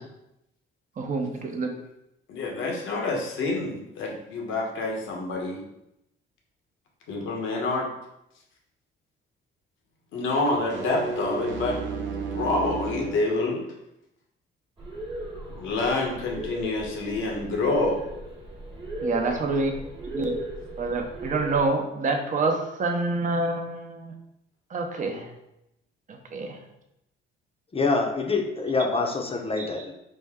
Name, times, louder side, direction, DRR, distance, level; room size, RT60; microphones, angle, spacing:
voice 1, 1.0-1.7 19.0-19.7 20.1-20.3 20.8-24.1 24.7-25.3 26.1-26.6 29.6-29.7, right 3 dB, 40° right, 4 dB, 0.7 m, -27 dB
voice 2, 2.3-5.6 7.1-7.9 10.1-11.8 12.3-13.6 15.5-18.1, left 2 dB, 85° left, 0 dB, 1.0 m, -27 dB
sound 1, 10.5-13.3, right 4 dB, 70° right, 0.7 m, -32 dB
sound 2, 14.8-21.7, right 1 dB, 25° right, 1.2 m, -36 dB
voice 3, 27.7-29.9, left 3 dB, 30° left, 2 dB, 0.7 m, -25 dB
5.3 x 2.2 x 3.6 m, 0.85 s
cardioid pair, 90°, 20 cm